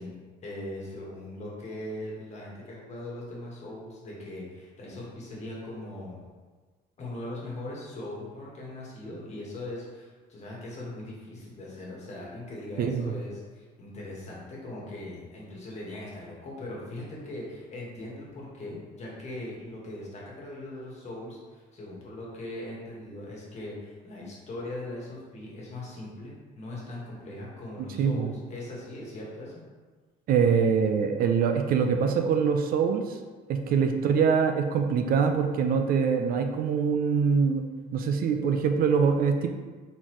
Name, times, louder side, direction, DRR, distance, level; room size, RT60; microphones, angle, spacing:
voice 1, 0.0-6.2 7.0-29.5 33.7-34.0, left 1 dB, 40° left, -4 dB, 1.5 m, -40 dB
voice 2, 12.8-13.1 28.0-28.3 30.3-33.2 33.5-37.6 37.9-39.5, right 6 dB, 60° right, 5 dB, 0.4 m, -24 dB
3.9 x 3.9 x 3.0 m, 1.4 s
cardioid pair, 110°, 17 cm